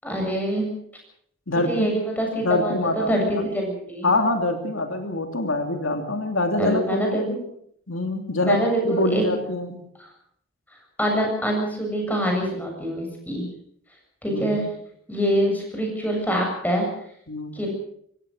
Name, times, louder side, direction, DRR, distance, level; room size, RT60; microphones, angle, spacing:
voice 1, 0.0-0.7 1.5-4.1 6.6-7.4 8.4-9.2 10.0-10.1 11.0-13.4 14.2-14.7 15.1-16.9 17.5-17.7, equal, 10° left, 1 dB, 7.5 m, -25 dB
voice 2, 1.5-2.0 2.4-3.4 4.0-7.4 7.9-9.8 14.3-14.7 17.3-17.6, left 2 dB, 85° left, 5 dB, 2.9 m, -25 dB
25.0 x 16.5 x 6.5 m, 0.68 s
head